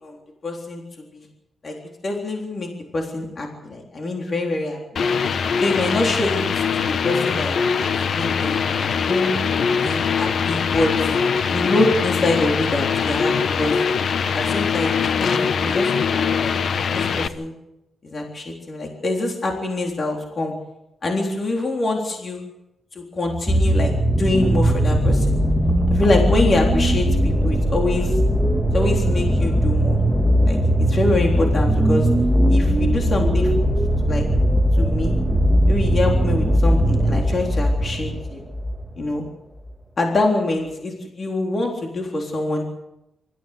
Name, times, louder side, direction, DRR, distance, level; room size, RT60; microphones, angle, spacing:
voice 1, 0.4-0.8 1.1-1.3 1.6-1.7 2.0-4.8 5.6-9.3 9.8-11.1 11.5-13.8 14.3-16.6 16.9-17.5 18.0-20.5 21.0-22.5 23.0-23.9 24.2-25.4 25.8-28.2 28.7-30.0 30.5-32.1 32.5-33.7 34.1-34.2 34.8-35.2 35.7-38.4 39.0-39.2 40.0-42.6, left 2 dB, 40° left, 1 dB, 3.7 m, -25 dB
sound 1, 5.0-17.3, left 6 dB, 60° left, 1.0 m, -22 dB
sound 2, 23.3-38.9 39.7-39.8, equal, 10° right, 2.0 m, -19 dB
25.0 x 14.5 x 8.0 m, 0.89 s
wide cardioid pair, 130°, 0 cm